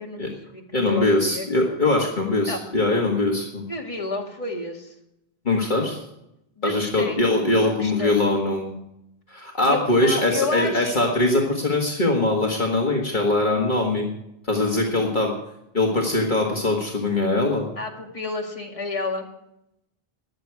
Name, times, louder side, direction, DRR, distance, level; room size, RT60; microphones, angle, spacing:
voice 1, 0.0-1.8 2.5-2.6 3.7-4.9 6.6-7.2 7.6-8.2 9.7-11.1 17.8-19.3, left 3 dB, 35° left, 0 dB, 2.1 m, -31 dB
voice 2, 0.7-3.6 5.4-6.0 6.6-8.8 9.3-14.1 14.5-15.3 15.7-17.7, left 2 dB, 50° left, -1 dB, 1.8 m, -22 dB
21.5 x 8.1 x 4.7 m, 0.83 s
omnidirectional pair, 1.1 m